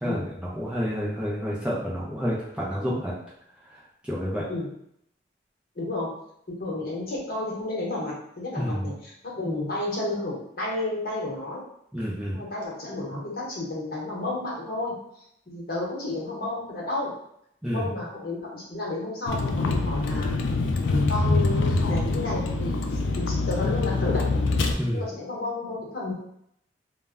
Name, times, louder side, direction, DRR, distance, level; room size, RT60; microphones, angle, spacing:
voice 1, 0.0-3.1 4.0-4.5 8.6-8.9 11.9-12.4 17.6-17.9 24.7-25.0, equal, 5° right, -7 dB, 0.4 m, -29 dB
voice 2, 5.7-6.1 6.5-11.6 12.3-14.9 15.5-17.1 17.7-20.3 20.8-22.7 23.2-24.4 24.9-26.1, left 2 dB, 55° left, -5 dB, 0.9 m, -31 dB
Vehicle, 19.3-24.7, left 3 dB, 85° left, 0.3 m, -25 dB
2.1 x 2.1 x 3.4 m, 0.73 s
head